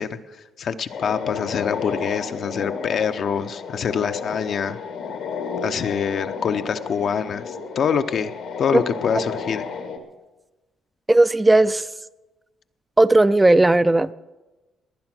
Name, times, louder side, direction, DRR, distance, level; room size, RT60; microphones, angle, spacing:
voice 1, 0.0-4.8 5.6-9.6, left 7 dB, 60° left, 9 dB, 0.8 m, -25 dB
sound 1, 0.9-10.0, left 5 dB, 80° left, 1.8 m, -32 dB
voice 2, 11.1-11.8 13.0-14.1, right 2 dB, 15° right, 13 dB, 0.4 m, -16 dB
19.0 x 9.7 x 6.1 m, 1.1 s
cardioid pair, 90°, 0 cm